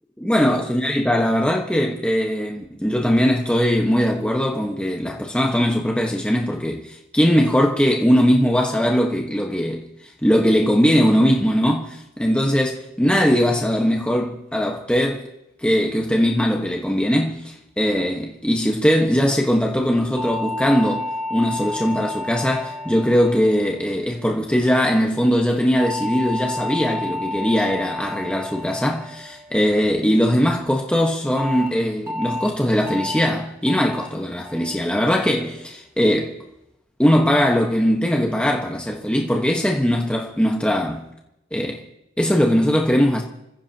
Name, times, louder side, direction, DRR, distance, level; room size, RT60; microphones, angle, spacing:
voice 1, 0.2-9.9 10.2-15.3 15.6-21.0 21.3-36.4 37.0-41.0 41.5-41.8 42.2-43.2, equal, 5° left, 1.3 m, -20 dB
sound 1, 20.2-24.6 25.8-30.2 31.4-31.7 32.1-32.5 32.9-33.3 33.7-34.1 34.5-34.9 35.3-35.7, left 1 dB, 15° right, 4.1 m, -31 dB
29.0 x 16.0 x 2.9 m
head